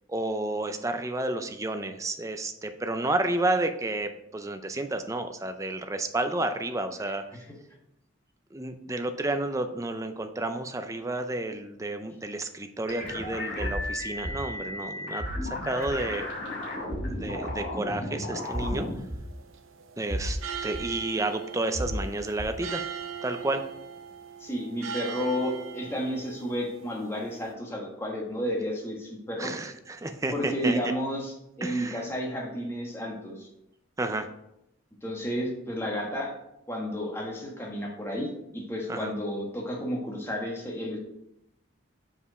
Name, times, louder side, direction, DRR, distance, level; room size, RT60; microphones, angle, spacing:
voice 1, 0.1-7.4 8.5-16.3 17.1-18.9 20.0-22.8 23.2-23.6 29.4-30.9 31.6-32.0 34.0-34.3 38.9-39.1, right 2 dB, 15° right, 8 dB, 0.4 m, -31 dB
sound 1, 12.9-19.0, left 2 dB, 60° left, 2.7 m, -35 dB
sound 2, 13.6-13.8 14.2-14.4 15.2-15.5 15.9-16.0 16.9-17.1 17.5-17.6 18.5-18.7 19.1-19.2 20.1-20.4 20.7-20.8 21.7-22.0 22.4-22.5, equal, 45° right, 1.2 m, -32 dB
sound 3, 18.4-27.5, right 7 dB, 85° right, 0.7 m, -41 dB
voice 2, 24.4-29.5 30.3-33.5 35.0-36.3 36.7-41.0, equal, 10° left, -1 dB, 1.3 m, -32 dB
5.5 x 4.9 x 4.7 m, 0.82 s
head